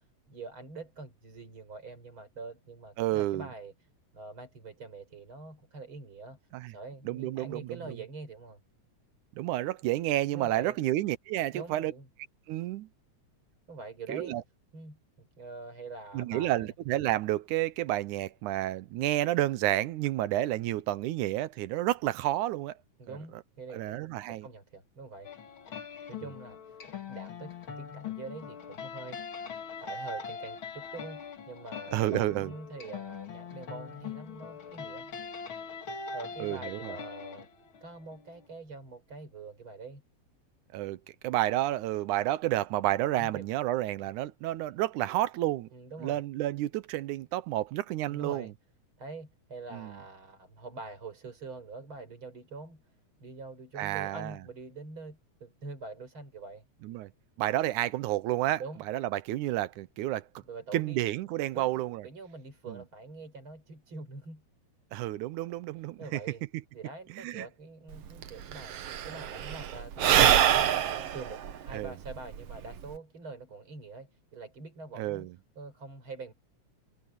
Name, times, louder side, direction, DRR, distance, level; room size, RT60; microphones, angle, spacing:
voice 1, 0.0-3.7 4.1-6.4 6.7-8.6 10.3-10.8 11.5-12.1 13.7-14.4 14.7-16.7 23.0-25.3 26.1-29.2 29.5-35.1 35.8-37.5 37.8-40.0 43.2-43.5 45.7-46.2 48.1-48.5 49.0-52.8 53.2-56.6 58.6-58.8 60.4-61.0 61.5-64.4 66.0-66.4 66.7-68.8 69.0-70.8 71.1-75.3 75.6-76.3, right 3 dB, 40° right, 5.6 m, -45 dB
voice 2, 3.0-3.5 6.5-6.7 7.1-8.0 9.3-11.9 12.5-12.9 14.1-14.4 16.1-22.8 23.1-23.2 23.7-24.5 31.9-32.5 36.4-37.0 40.7-45.7 46.0-48.5 49.7-50.0 53.8-54.4 56.8-57.1 57.4-60.3 60.7-62.0 62.7-62.8 64.9-66.2 67.1-67.5 71.7-72.0 75.0-75.3, right 15 dB, 85° right, 2.3 m, -30 dB
sound 1, 25.2-38.5, left 5 dB, 45° left, 2.6 m, -42 dB
Sigh / Breathing, 67.9-68.0 68.2-73.0, right 10 dB, 60° right, 2.0 m, -25 dB
omnidirectional pair, 3.4 m